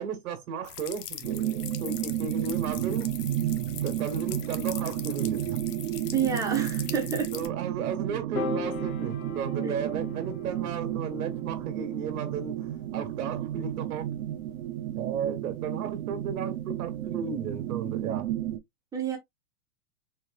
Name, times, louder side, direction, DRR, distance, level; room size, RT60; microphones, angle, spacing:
voice 1, 0.0-3.2 3.8-5.6 7.3-14.1 14.9-18.3, right 6 dB, 65° right, 1.5 m, -35 dB
sound 1, 0.6-7.5, left 10 dB, 80° left, 0.9 m, -41 dB
sound 2, 1.2-18.6, right 12 dB, 40° right, 0.7 m, -32 dB
voice 2, 6.1-7.3 9.6-9.7 18.9-19.2, right 7 dB, 10° right, 0.4 m, -28 dB
Piano, 8.3-14.7, left 3 dB, 60° left, 1.2 m, -39 dB
4.4 x 3.1 x 2.4 m
hypercardioid pair, 135°, 47 cm